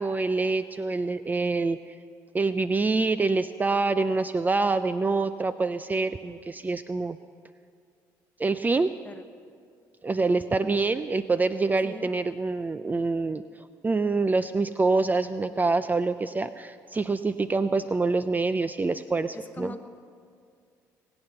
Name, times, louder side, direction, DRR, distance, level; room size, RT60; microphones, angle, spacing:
voice 1, 0.0-2.0 2.3-7.2 8.4-8.9 10.0-19.7, right 3 dB, 20° right, 12 dB, 0.4 m, -26 dB
voice 2, 19.3-19.9, left 3 dB, 20° left, 8 dB, 1.2 m, -42 dB
20.5 x 9.0 x 6.7 m, 2.3 s
supercardioid pair, 70°, 8 cm